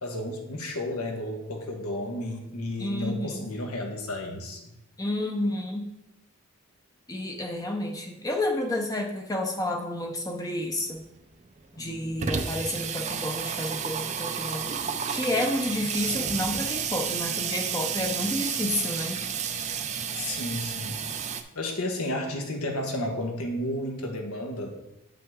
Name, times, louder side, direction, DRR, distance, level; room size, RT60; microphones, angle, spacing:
voice 1, 0.0-4.6 20.1-21.0 21.5-24.7, left 1 dB, 90° left, 3 dB, 1.4 m, -32 dB
voice 2, 2.8-3.5 5.0-5.9 7.1-11.0 11.8-19.2, left 1 dB, 15° left, 2 dB, 0.6 m, -30 dB
Water tap faucet / Sink (filling or washing), 10.8-10.9 11.2-11.3 11.5-21.4, right 7 dB, 30° right, 0.4 m, -31 dB
8.1 x 5.8 x 3.6 m, 0.90 s
head